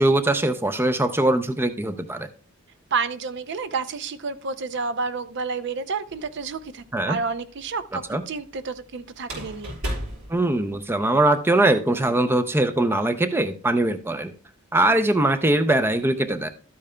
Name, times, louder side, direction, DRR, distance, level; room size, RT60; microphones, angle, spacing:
voice 1, 0.0-2.3 6.9-7.2 8.1-8.2 10.3-14.3 14.7-16.5, right 1 dB, 10° right, 10 dB, 0.5 m, -21 dB
voice 2, 2.9-9.7, right 4 dB, 55° right, 12 dB, 0.5 m, -30 dB
sound 1, 6.1-6.7 9.2-11.2, equal, 85° right, 5.5 m, -34 dB
12.5 x 8.5 x 2.2 m, 0.38 s
head